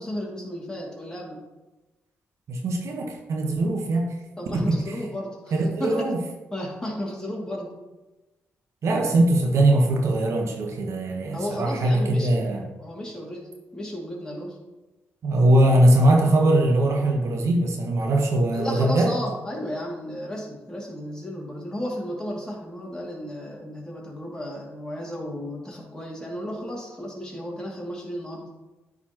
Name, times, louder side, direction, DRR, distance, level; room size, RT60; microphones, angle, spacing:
voice 1, 0.0-1.4 4.4-5.5 5.8-6.0 6.5-7.7 11.3-12.4 12.8-14.6 18.5-28.5, equal, 15° left, -3 dB, 2.3 m, -33 dB
voice 2, 2.5-4.1 4.7-4.8 5.5-6.2 8.8-12.6 15.2-19.1, right 1 dB, 65° right, 2 dB, 1.0 m, -21 dB
9.6 x 4.2 x 2.9 m, 1.1 s
supercardioid pair, 65°, 5 cm